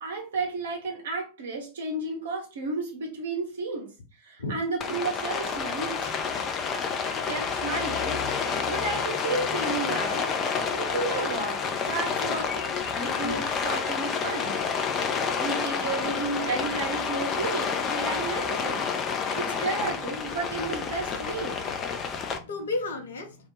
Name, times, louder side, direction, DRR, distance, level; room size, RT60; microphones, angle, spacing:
voice 1, 0.0-3.9 4.2-6.3 7.3-10.4 10.8-14.6 15.4-18.9 19.4-21.6, right 3 dB, 60° right, 0.6 m, -33 dB
Rain, 4.8-22.4, left 6 dB, 30° left, 0.4 m, -29 dB
voice 2, 21.4-23.5, left 2 dB, 65° left, 0.7 m, -35 dB
2.2 x 2.0 x 3.1 m
figure-of-eight pair, 90°, 0 cm